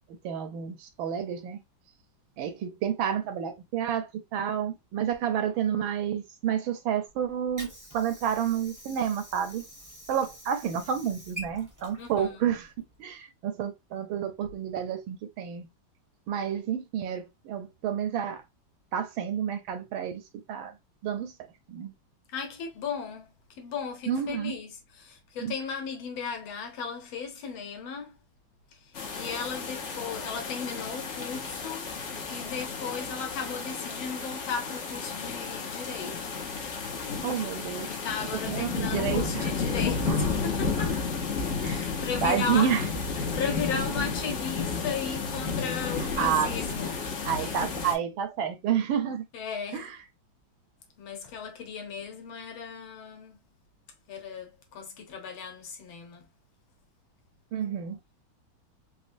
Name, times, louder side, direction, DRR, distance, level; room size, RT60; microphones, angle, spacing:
voice 1, 0.2-1.6 2.4-9.7 10.1-12.7 13.0-15.7 16.3-18.4 18.9-20.2 20.5-20.7 21.0-21.3 21.7-21.9 24.1-24.5 25.4-25.5 37.2-37.9 38.5-39.5 40.1-40.2 41.6-41.8 42.2-42.8 46.0-46.6 47.2-49.2 49.7-50.0 57.5-58.0, right 8 dB, 85° right, 1.5 m, -30 dB
Water / Sink (filling or washing), 7.1-13.1, equal, 15° right, 0.6 m, -47 dB
voice 2, 12.0-12.5 22.3-28.2 28.7-31.9 32.3-36.5 37.9-41.0 41.6-42.7 43.1-47.7 49.3-49.9 51.0-53.4 54.1-56.3, left 6 dB, 85° left, 1.8 m, -36 dB
sound 1, 28.9-48.0, left 4 dB, 65° left, 0.7 m, -32 dB
4.2 x 2.2 x 2.5 m
omnidirectional pair, 2.2 m